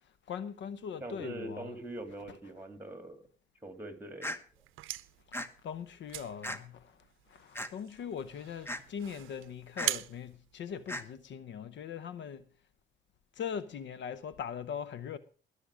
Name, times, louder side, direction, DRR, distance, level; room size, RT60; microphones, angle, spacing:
voice 1, 0.0-1.8 5.3-12.5 13.3-15.2, left 7 dB, 65° left, 0.8 m, -41 dB
voice 2, 1.0-3.2 3.6-4.3, right 1 dB, 10° right, 3.0 m, -42 dB
sound 1, 4.2-4.4 5.3-5.5 6.4-6.6 7.6-7.7 8.7-8.8 9.8-9.9 10.9-11.0, left 1 dB, 10° left, 1.2 m, -36 dB
sound 2, 4.5-11.3, right 16 dB, 90° right, 0.6 m, -42 dB
20.0 x 6.9 x 4.9 m
cardioid pair, 90°, 20 cm